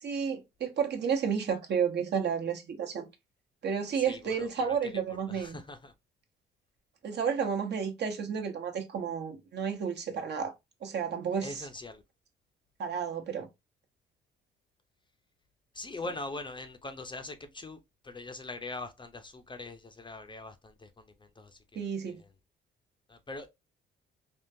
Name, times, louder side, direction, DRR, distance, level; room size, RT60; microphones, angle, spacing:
voice 1, 0.0-3.1 3.6-5.6 7.0-10.5 10.8-11.7 12.8-13.5 21.7-22.2, right 7 dB, 60° right, 1.0 m, -31 dB
voice 2, 4.1-4.9 5.3-5.9 11.4-12.0 15.7-17.8 18.0-22.3 23.1-23.5, left 2 dB, 25° left, 0.6 m, -42 dB
3.5 x 2.3 x 2.7 m
cardioid pair, 90°, 20 cm